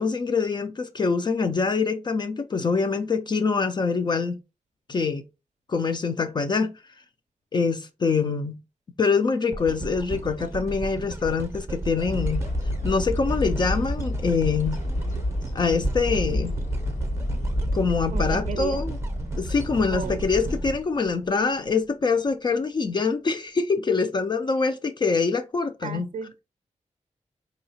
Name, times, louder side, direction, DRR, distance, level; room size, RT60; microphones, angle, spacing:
voice 1, 0.0-4.4 4.9-5.2 5.7-6.7 7.5-8.6 9.0-12.5 12.8-14.8 15.5-16.6 17.7-19.0 19.4-26.1, left 4 dB, 35° left, 0.3 m, -24 dB
sound 1, 9.5-21.7 22.3-22.4, right 2 dB, 20° right, 0.6 m, -35 dB
sound 2, 12.1-20.8, left 1 dB, 80° left, 1.8 m, -29 dB
voice 2, 18.1-18.8 19.9-20.2 25.8-26.4, right 7 dB, 65° right, 0.4 m, -34 dB
3.9 x 2.8 x 2.7 m
wide cardioid pair, 170°, 13 cm